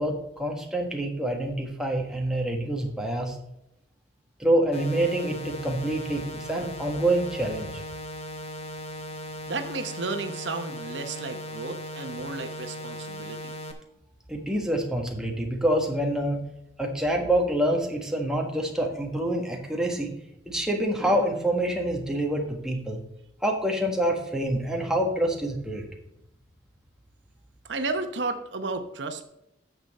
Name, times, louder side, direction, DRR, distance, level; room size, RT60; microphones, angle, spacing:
voice 1, 0.0-3.4 4.4-7.8 14.3-16.4 16.8-20.1 20.5-23.0 23.4-25.8, right 1 dB, 5° right, 1 dB, 1.4 m, -26 dB
sound 1, 4.7-13.7, equal, 35° left, 1.0 m, -38 dB
voice 2, 9.5-13.5 27.6-29.2, right 3 dB, 75° right, 8 dB, 0.9 m, -33 dB
9.4 x 6.9 x 4.1 m, 0.82 s
head